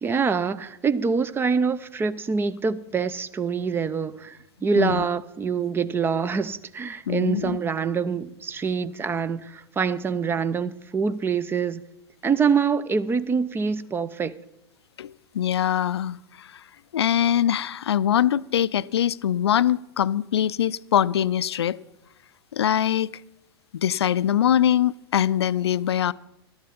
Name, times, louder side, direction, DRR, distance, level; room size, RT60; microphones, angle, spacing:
voice 1, 0.0-11.8 12.2-14.4, right 5 dB, 15° right, 0.5 m, -25 dB
voice 2, 4.7-5.1 7.1-7.6 15.0-16.6 16.9-21.8 22.5-23.1 23.7-26.1, left 10 dB, 75° left, 0.4 m, -23 dB
12.5 x 10.5 x 5.3 m
hypercardioid pair, 105°, 14 cm